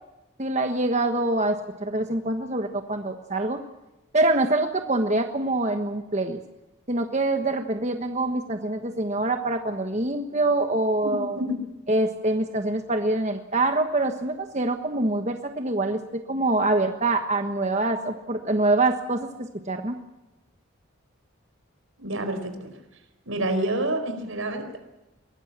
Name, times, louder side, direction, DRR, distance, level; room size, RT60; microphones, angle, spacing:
voice 1, 0.4-3.6 4.1-6.4 6.9-11.4 11.9-20.0, right 2 dB, 35° right, 6 dB, 1.3 m, -25 dB
voice 2, 11.0-11.6 22.0-22.7 23.3-25.0, right 1 dB, 85° right, 7 dB, 4.9 m, -28 dB
23.0 x 19.5 x 7.4 m, 0.99 s
head